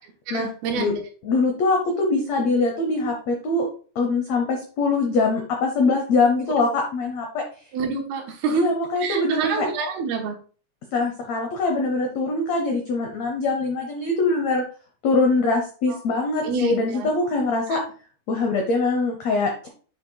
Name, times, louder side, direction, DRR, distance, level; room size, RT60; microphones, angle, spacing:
voice 1, 0.3-1.0 6.6-6.7 7.7-8.7 9.0-10.4 15.9-16.0 16.4-17.1 17.7-17.8, right 5 dB, 80° right, 3 dB, 2.9 m, -27 dB
voice 2, 1.2-3.7 3.9-7.4 8.5-9.7 10.9-14.6 15.0-17.8 18.3-19.7, left 3 dB, 80° left, 2 dB, 1.5 m, -23 dB
7.9 x 5.9 x 2.3 m, 0.40 s
omnidirectional pair, 4.5 m